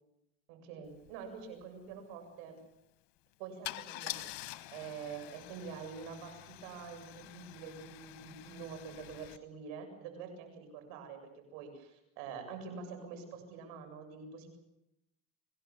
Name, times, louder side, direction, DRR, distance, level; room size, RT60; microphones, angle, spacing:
voice 1, 0.5-2.6 3.4-4.3 4.7-14.6, right 6 dB, 85° right, 6 dB, 7.7 m, -46 dB
Car / Engine starting / Idling, 1.0-1.1 1.4-1.6 3.6-9.4, left 18 dB, 80° left, 1.4 m, -46 dB
27.0 x 17.5 x 7.2 m, 0.85 s
cardioid pair, 105°, 37 cm